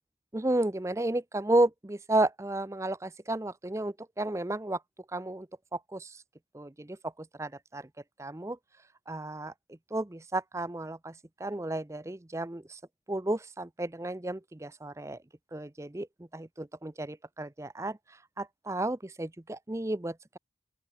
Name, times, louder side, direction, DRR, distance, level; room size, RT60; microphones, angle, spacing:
voice 1, 0.3-4.8 5.1-5.5 5.7-6.2 6.5-7.9 8.2-8.6 9.1-11.1 11.4-12.8 13.1-15.2 15.5-16.1 16.3-18.0 18.4-20.4, right 1 dB, 15° right, 0.6 m, -32 dB
open air
head